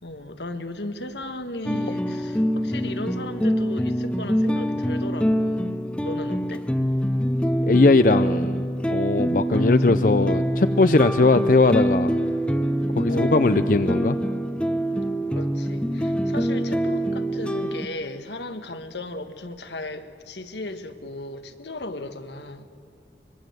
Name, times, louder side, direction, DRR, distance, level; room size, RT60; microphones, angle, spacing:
voice 1, 0.0-6.7 9.5-10.0 13.1-13.5 15.3-22.7, left 2 dB, 80° left, 8 dB, 1.5 m, -36 dB
sound 1, 1.6-17.9, equal, 5° left, 0.7 m, -24 dB
voice 2, 7.7-12.1 13.0-14.2, left 3 dB, 50° left, 11 dB, 0.5 m, -20 dB
25.0 x 22.0 x 7.9 m, 2.3 s
head